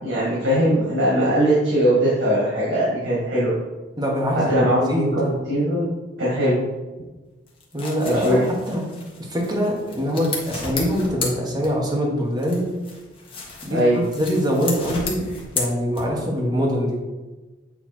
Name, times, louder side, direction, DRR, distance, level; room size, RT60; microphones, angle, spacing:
voice 1, 0.0-3.5 4.5-5.8 6.2-6.6 8.1-8.4 13.7-14.0, equal, 80° right, -7 dB, 2.1 m, -20 dB
voice 2, 4.0-5.1 7.7-8.9 9.2-12.7 13.6-15.3 15.5-17.0, equal, 20° right, -2 dB, 1.4 m, -23 dB
sound 1, 7.5-12.0 12.4-16.4, left 3 dB, 30° left, 1.3 m, -33 dB
8.3 x 3.4 x 4.5 m, 1.2 s
head